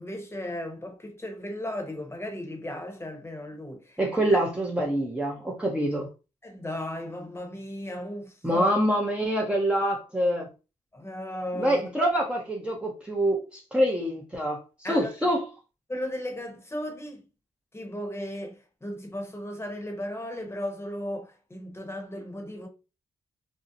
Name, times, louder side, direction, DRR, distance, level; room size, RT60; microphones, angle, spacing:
voice 1, 0.0-4.0 6.4-8.7 10.9-12.1 14.8-15.1 15.9-17.2 17.7-22.7, left 1 dB, 20° left, 0.9 m, -35 dB
voice 2, 4.0-6.1 8.4-10.5 11.5-15.5, right 1 dB, 10° right, 0.6 m, -26 dB
2.6 x 2.0 x 2.5 m
cardioid pair, 60°, 14 cm